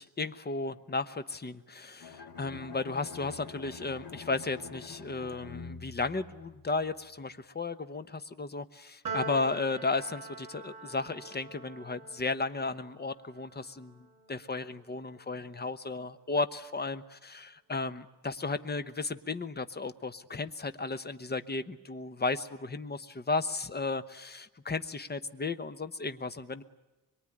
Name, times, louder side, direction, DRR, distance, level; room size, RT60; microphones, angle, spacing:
voice 1, 0.0-26.6, left 3 dB, 25° left, 12 dB, 1.0 m, -34 dB
Bowed string instrument, 2.0-7.0, left 5 dB, 60° left, 2.6 m, -47 dB
Piano, 9.0-15.6, right 3 dB, 60° right, 4.8 m, -44 dB
24.0 x 23.0 x 9.9 m, 1.1 s
wide cardioid pair, 150°, 39 cm